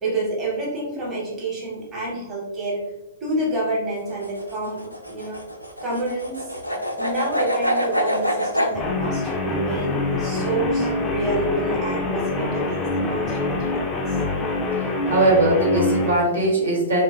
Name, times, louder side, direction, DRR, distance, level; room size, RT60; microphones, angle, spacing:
voice 1, 0.0-2.8 3.2-5.4 5.8-6.5 7.0-13.8 14.1-14.2, right 2 dB, 15° right, -6 dB, 1.0 m, -28 dB
sound 1, 4.0-8.7, equal, 85° left, 0.4 m, -25 dB
Guitar, 8.7-16.2, left 2 dB, 20° left, 0.4 m, -25 dB
voice 2, 15.1-17.0, right 1 dB, 65° right, -4 dB, 0.8 m, -19 dB
3.2 x 2.1 x 2.3 m, 0.96 s
figure-of-eight pair, 110°, 0 cm